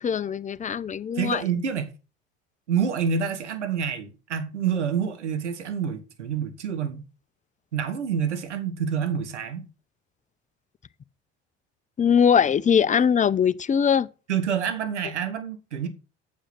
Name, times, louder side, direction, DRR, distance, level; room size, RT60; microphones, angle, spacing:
voice 1, 0.0-1.4 12.0-14.1, left 7 dB, 20° left, 0.6 m, -21 dB
voice 2, 1.1-1.9 2.7-7.0 7.7-9.7 14.3-15.9, right 7 dB, 90° right, 1.6 m, -27 dB
8.8 x 7.2 x 5.9 m
hypercardioid pair, 70°, 34 cm